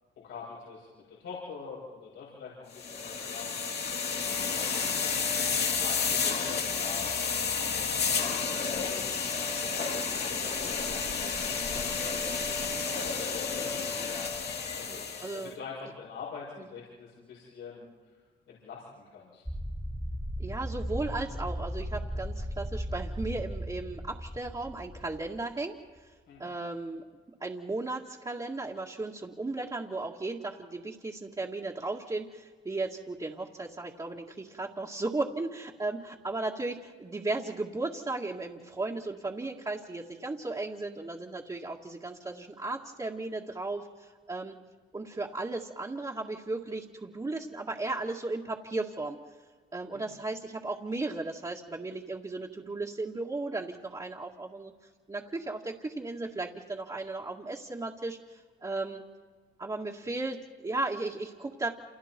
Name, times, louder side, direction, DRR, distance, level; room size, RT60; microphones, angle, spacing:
voice 1, 0.2-3.6 4.5-5.4 5.7-8.5 8.8-10.0 10.3-10.9 11.4-12.5 13.4-14.4 14.7-15.1 15.3-18.1 18.5-19.4 26.3-26.5 49.9-50.1, left 5 dB, 90° left, -6 dB, 7.4 m, -45 dB
sound 1, 2.7-15.5, left 5 dB, 55° left, 2.8 m, -31 dB
voice 2, 14.9-15.6 20.4-26.1 26.4-27.0 27.4-44.5 44.9-49.2 49.7-54.7 55.1-59.0 59.6-61.7, right 2 dB, 20° right, -3 dB, 2.1 m, -35 dB
sound 2, 19.5-25.5, equal, ahead, 1.0 m, -36 dB
29.0 x 28.0 x 4.6 m, 1.5 s
cardioid pair, 90°, 20 cm